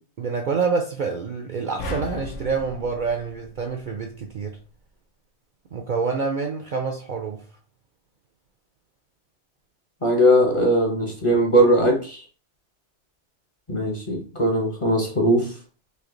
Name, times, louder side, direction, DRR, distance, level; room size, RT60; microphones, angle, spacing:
voice 1, 0.2-4.6 5.7-7.4, right 5 dB, 55° right, 0.5 m, -27 dB
sound 1, 1.8-4.2, left 1 dB, 75° left, 1.0 m, -36 dB
voice 2, 10.0-12.2 13.7-15.5, equal, 30° left, 0.7 m, -19 dB
3.3 x 2.7 x 3.7 m
omnidirectional pair, 1.2 m